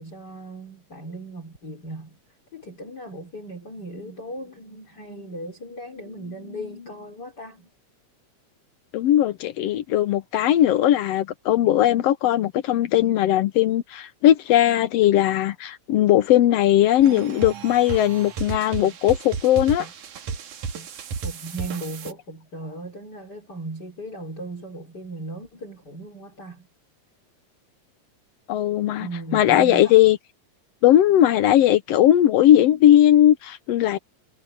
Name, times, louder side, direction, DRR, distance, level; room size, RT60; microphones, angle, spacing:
voice 1, 0.0-2.2 2.5-7.7 21.2-26.7 29.0-30.0, right 2 dB, 30° left, 4.6 m, -37 dB
voice 2, 8.9-19.9 28.5-29.1 29.3-30.2 30.8-34.0, left 12 dB, 75° left, 1.6 m, -18 dB
sound 1, 17.0-22.1, right 6 dB, 80° right, 3.4 m, -33 dB
omnidirectional pair, 3.5 m